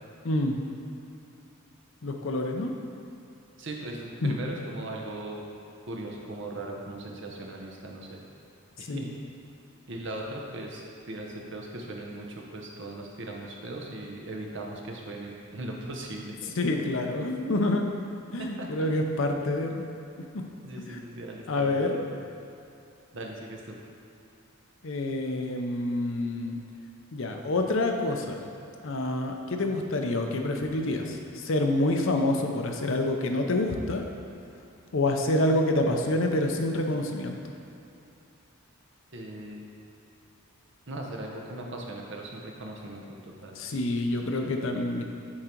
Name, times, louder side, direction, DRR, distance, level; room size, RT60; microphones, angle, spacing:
voice 1, 0.2-0.6 2.0-2.7 4.2-4.4 8.9-9.1 16.6-17.8 18.3-19.8 20.3-20.4 20.8-21.0 21.5-22.0 24.8-26.6 27.1-28.4 28.8-34.0 34.9-37.3 43.6-45.0, left 2 dB, 60° left, 3 dB, 0.6 m, -27 dB
voice 2, 3.6-5.5 5.9-8.2 8.8-9.1 9.9-10.8 11.1-16.5 18.4-18.7 20.6-22.0 23.1-23.8 39.1-39.6 40.9-43.6 44.2-44.6, right 1 dB, 55° right, 0 dB, 0.9 m, -39 dB
8.6 x 3.8 x 4.5 m, 2.7 s
head